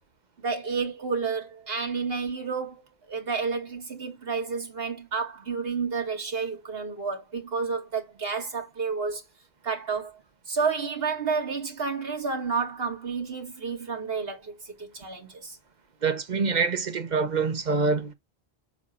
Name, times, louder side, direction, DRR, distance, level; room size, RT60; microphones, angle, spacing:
voice 1, 0.4-2.8 3.1-9.2 9.6-10.1 10.5-15.6, right 5 dB, 65° right, 2.1 m, -30 dB
voice 2, 16.0-18.1, right 4 dB, 45° right, 1.0 m, -25 dB
7.3 x 2.8 x 5.9 m
omnidirectional pair, 1.1 m